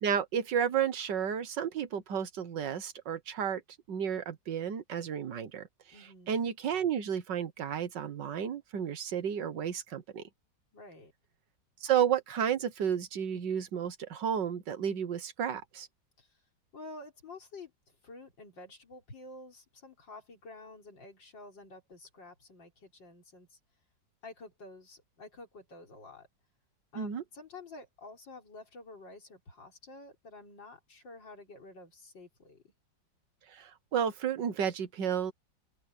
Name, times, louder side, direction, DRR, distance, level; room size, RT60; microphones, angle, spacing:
voice 1, 0.0-3.6 3.9-5.7 6.3-10.2 11.8-15.9 27.0-27.2 33.5-35.3, right 8 dB, 75° right, 1.9 m, -32 dB
voice 2, 5.9-6.4 10.7-11.1 16.2-16.3 16.7-23.6 24.2-26.3 26.9-32.7, left 2 dB, 80° left, 4.9 m, -50 dB
open air
omnidirectional pair, 2.0 m